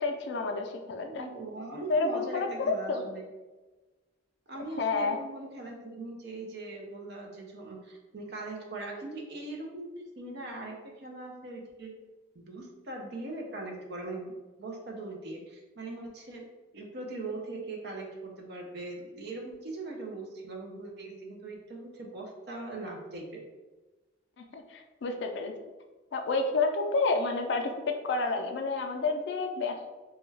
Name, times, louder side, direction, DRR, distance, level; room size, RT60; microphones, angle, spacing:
voice 1, 0.0-1.3 1.9-3.0 4.8-5.2 24.4-25.5 26.1-27.7 28.0-29.9, left 3 dB, 60° left, 4 dB, 0.3 m, -30 dB
voice 2, 1.0-3.3 4.5-12.0 12.3-16.5 16.7-23.5, right 2 dB, 55° right, 1 dB, 0.5 m, -40 dB
2.2 x 2.2 x 3.2 m, 1.2 s
head